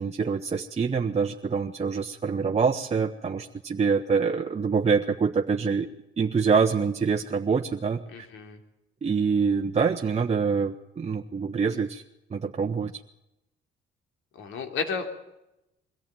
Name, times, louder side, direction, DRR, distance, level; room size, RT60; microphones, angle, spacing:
voice 1, 0.0-5.9 6.2-8.0 9.0-12.0 12.3-12.9, right 5 dB, 35° right, 2 dB, 1.1 m, -25 dB
voice 2, 8.1-8.6 14.3-15.0, left 5 dB, 85° left, 5 dB, 3.3 m, -32 dB
22.5 x 14.5 x 9.0 m, 0.89 s
cardioid pair, 90°, 20 cm